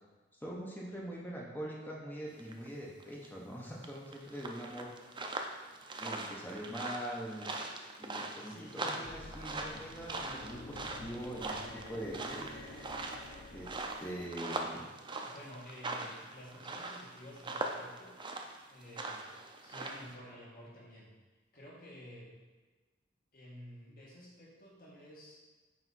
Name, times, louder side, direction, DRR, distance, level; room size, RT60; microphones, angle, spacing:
voice 1, 0.4-4.9 6.0-7.7 8.0-12.6 13.5-14.9, equal, 10° left, -4 dB, 0.9 m, -43 dB
sound 1, 2.4-2.7 3.0-3.3 3.8-20.1, right 2 dB, 25° right, 0.5 m, -41 dB
voice 2, 8.4-9.1 15.2-18.2 18.7-21.1 21.5-22.4 23.3-25.4, equal, 50° left, -5 dB, 1.9 m, -52 dB
sound 2, 9.0-14.3, left 2 dB, 70° left, 0.7 m, -49 dB
9.0 x 3.4 x 4.1 m, 1.3 s
head